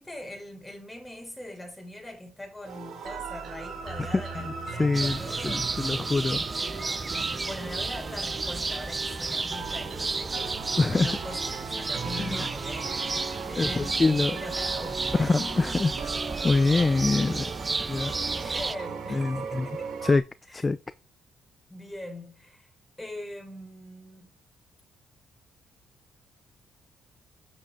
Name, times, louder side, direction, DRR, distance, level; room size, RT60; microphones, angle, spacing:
voice 1, 0.0-6.0 6.4-11.4 11.8-12.9 13.5-15.8 18.3-19.9 20.5-20.6 21.7-22.7 23.0-24.3, left 1 dB, 10° left, 4.4 m, -42 dB
sound 1, 2.6-20.2, right 5 dB, 65° right, 3.2 m, -38 dB
voice 2, 4.8-5.2 5.4-6.4 10.8-11.1 12.2-12.5 13.6-14.3 15.1-15.9 16.4-17.4 17.9-18.1 19.1-19.7 20.0-20.2 20.5-20.8, left 3 dB, 25° left, 0.6 m, -24 dB
sound 2, 4.9-18.8, right 3 dB, 25° right, 0.4 m, -32 dB
8.3 x 7.7 x 4.0 m
cardioid pair, 90°, 0 cm